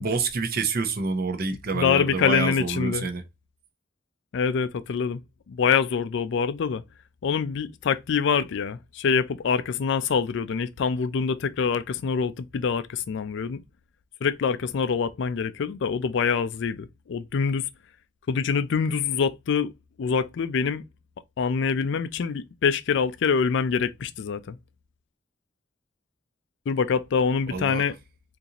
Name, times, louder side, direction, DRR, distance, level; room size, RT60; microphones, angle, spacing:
voice 1, 0.0-3.2 27.5-27.8, right 4 dB, 50° right, 0.7 m, -27 dB
voice 2, 1.7-3.1 4.3-5.2 5.5-6.8 7.2-13.6 14.2-17.7 18.3-19.7 20.0-20.8 21.4-24.6 26.7-27.9, left 6 dB, 65° left, 0.4 m, -25 dB
3.8 x 2.6 x 2.9 m
head